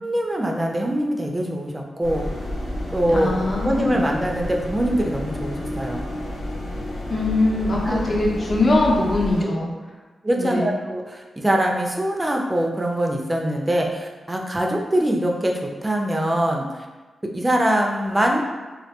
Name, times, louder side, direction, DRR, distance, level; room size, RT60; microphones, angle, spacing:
voice 1, 0.0-2.3 2.9-3.4 3.6-6.0 7.9-8.1 10.2-16.7 17.3-18.4, right 1 dB, 15° right, 0 dB, 0.4 m, -23 dB
sound 1, 2.0-9.4, left 1 dB, 85° left, 0.6 m, -30 dB
voice 2, 3.1-4.0 7.1-9.7 10.4-10.7, left 2 dB, 45° left, -3 dB, 0.6 m, -22 dB
2.2 x 2.2 x 2.8 m, 1.3 s
cardioid pair, 70°, 0 cm